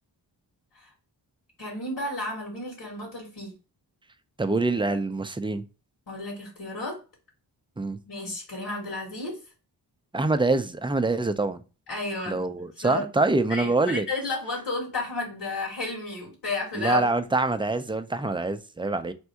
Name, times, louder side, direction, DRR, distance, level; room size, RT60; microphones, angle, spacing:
voice 1, 1.6-3.5 6.1-7.0 8.1-9.4 11.9-12.4 12.8-13.1 13.5-17.1, left 2 dB, 70° left, 2.2 m, -32 dB
voice 2, 4.4-5.6 7.8-8.0 10.1-11.6 12.3-14.1 16.7-19.1, right 2 dB, 10° right, 0.5 m, -25 dB
3.6 x 2.6 x 4.4 m
cardioid pair, 70°, 42 cm